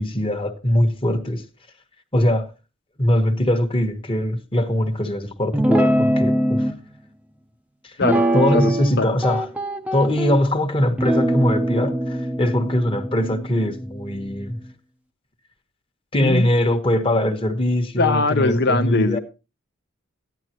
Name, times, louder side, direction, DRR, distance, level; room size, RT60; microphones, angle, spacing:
voice 1, 0.0-1.4 2.1-2.5 3.0-6.7 7.8-8.0 8.3-9.5 9.9-14.6 16.1-19.2, left 1 dB, 25° left, 1.3 m, -21 dB
Guitar, 5.5-6.7 8.0-8.9 9.2-10.4 11.0-14.5, right 1 dB, 5° right, 0.7 m, -22 dB
voice 2, 16.2-16.8 18.0-19.2, left 3 dB, 50° left, 0.8 m, -21 dB
14.5 x 10.5 x 3.0 m
head